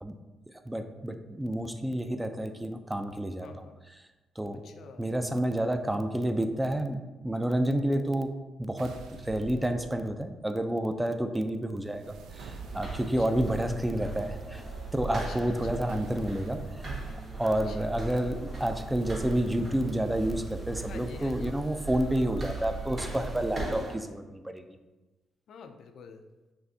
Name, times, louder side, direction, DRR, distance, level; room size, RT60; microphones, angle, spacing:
voice 1, 0.7-4.0 4.4-4.6 5.0-8.3 8.6-8.9 9.2-14.6 14.9-16.6 17.4-24.6, right 1 dB, 10° right, 7 dB, 0.4 m, -30 dB
voice 2, 3.4-3.8 4.5-5.1 7.7-8.1 11.2-11.3 13.0-13.5 15.1-15.5 17.5-18.0 20.9-21.6 25.5-26.3, left 5 dB, 65° left, 8 dB, 0.4 m, -48 dB
sound 1, 8.8-10.4 11.8-13.3 15.9-16.7 19.0-20.1, right 4 dB, 80° right, 0.4 m, -46 dB
sound 2, 12.4-23.9, right 3 dB, 40° right, 1.4 m, -38 dB
sound 3, 12.6-23.9, left 1 dB, 15° left, 0.8 m, -50 dB
6.3 x 2.6 x 2.7 m, 1.1 s
cardioid pair, 90°, 0 cm